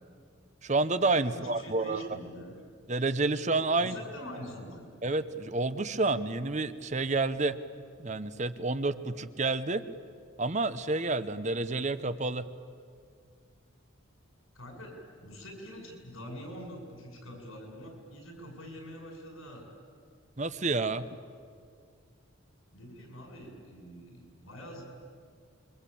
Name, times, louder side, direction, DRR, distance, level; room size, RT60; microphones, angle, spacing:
voice 1, 0.6-2.0 2.9-3.9 5.0-7.5 8.0-9.8 10.4-12.4 20.4-21.0, right 3 dB, 35° right, 12 dB, 0.9 m, -29 dB
voice 2, 1.3-2.5 3.8-4.9 14.5-19.7 22.7-24.8, equal, 90° left, 2 dB, 7.4 m, -44 dB
27.5 x 24.0 x 8.6 m, 2.1 s
head